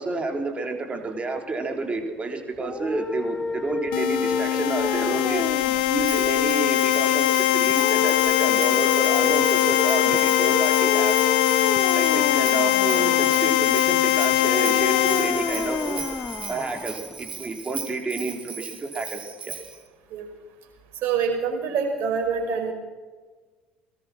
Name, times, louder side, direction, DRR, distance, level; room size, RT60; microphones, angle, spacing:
voice 1, 0.0-5.5 5.9-11.3 11.9-16.0 16.5-19.6, right 3 dB, 25° right, 4 dB, 3.8 m, -30 dB
sound 1, 2.5-17.5, left 3 dB, 15° left, 0.9 m, -31 dB
sound 2, 3.9-16.6, left 15 dB, 65° left, 1.0 m, -22 dB
Bell, 6.0-19.8, right 6 dB, 80° right, 2.3 m, -38 dB
voice 2, 21.0-22.7, right 6 dB, 50° right, 4 dB, 5.3 m, -26 dB
22.5 x 20.0 x 6.1 m, 1.3 s
figure-of-eight pair, 65°, 5 cm